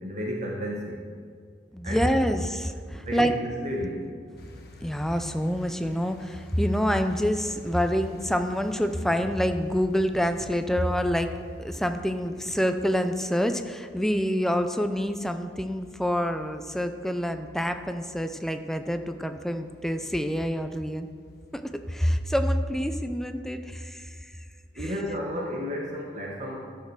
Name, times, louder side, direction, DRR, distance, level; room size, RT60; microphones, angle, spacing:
voice 1, 0.0-1.0 1.8-2.0 2.9-4.0 24.7-26.6, equal, 40° right, -2 dB, 1.3 m, -32 dB
voice 2, 1.7-3.3 4.8-11.3 11.6-21.1 21.5-21.6 21.9-24.1 24.8-24.9, equal, ahead, 8 dB, 0.5 m, -27 dB
sound 1, 4.4-22.3, left 1 dB, 55° left, 1.3 m, -51 dB
12.5 x 6.7 x 6.2 m, 2.1 s
head